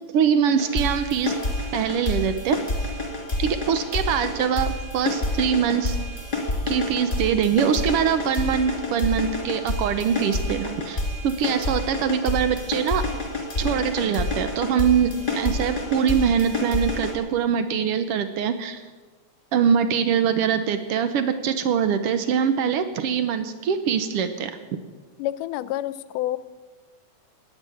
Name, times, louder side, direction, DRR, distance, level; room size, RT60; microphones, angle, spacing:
voice 1, 0.1-1.4 1.7-2.6 3.4-6.0 6.6-13.0 13.6-18.8 19.5-24.5, right 7 dB, 80° right, 10 dB, 1.3 m, -23 dB
sound 1, 0.6-17.1, left 2 dB, 15° left, 2.5 m, -28 dB
voice 2, 25.2-26.4, left 14 dB, 85° left, 16 dB, 2.1 m, -28 dB
17.5 x 11.0 x 7.1 m, 1.3 s
omnidirectional pair, 3.7 m